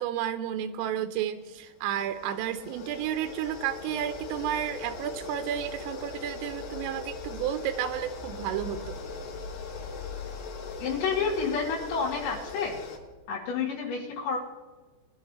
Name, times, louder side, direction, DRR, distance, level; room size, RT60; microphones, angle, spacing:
voice 1, 0.0-9.0, right 10 dB, 85° right, 8 dB, 3.2 m, -32 dB
sound 1, 1.4-13.0, left 4 dB, 65° left, 3.6 m, -40 dB
voice 2, 10.8-12.8 13.3-14.4, left 5 dB, 85° left, -6 dB, 4.7 m, -29 dB
22.5 x 12.0 x 3.2 m, 1.2 s
omnidirectional pair, 5.8 m